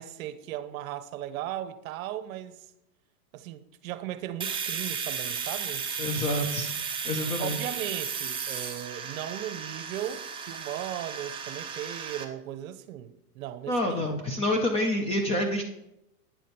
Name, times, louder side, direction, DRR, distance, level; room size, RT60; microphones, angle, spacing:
voice 1, 0.0-2.7 3.3-5.9 7.2-14.2, right 12 dB, 60° right, 0.8 m, -37 dB
Domestic sounds home sounds, 4.4-12.2, right 6 dB, 10° right, 0.7 m, -34 dB
voice 2, 6.0-6.8 7.0-7.6 13.7-15.6, left 1 dB, 15° left, 0.4 m, -27 dB
9.3 x 5.0 x 4.2 m
hypercardioid pair, 120°, 47 cm